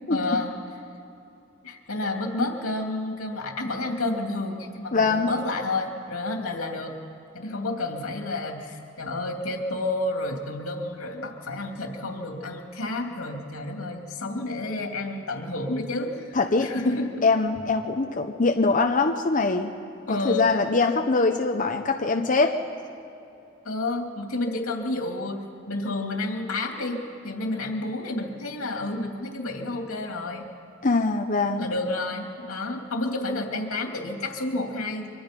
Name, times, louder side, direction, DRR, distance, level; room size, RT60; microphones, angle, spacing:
voice 1, 0.1-0.5 1.6-7.0 7.3-17.2 20.1-20.5 23.6-25.4 25.7-27.0 27.2-30.5 31.6-35.1, left 2 dB, 90° left, 2 dB, 2.7 m, -30 dB
voice 2, 4.9-5.3 16.3-16.7 17.2-19.7 20.1-22.6 30.8-31.7, left 3 dB, 40° left, 4 dB, 0.8 m, -23 dB
24.0 x 23.5 x 5.3 m, 2.8 s
head